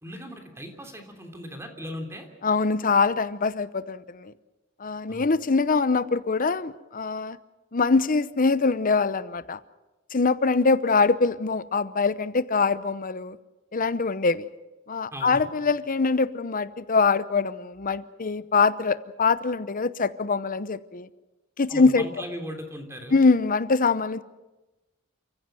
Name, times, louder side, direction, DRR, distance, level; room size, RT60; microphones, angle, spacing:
voice 1, 0.0-2.3 5.1-5.3 15.1-15.5 21.7-23.2, equal, 15° right, 3.2 m, -38 dB
voice 2, 2.4-4.3 4.8-7.4 7.7-9.6 10.1-13.4 13.7-14.5 14.9-21.1 21.6-22.0 23.1-24.2, left 4 dB, 45° left, 0.8 m, -23 dB
29.0 x 15.0 x 7.7 m
head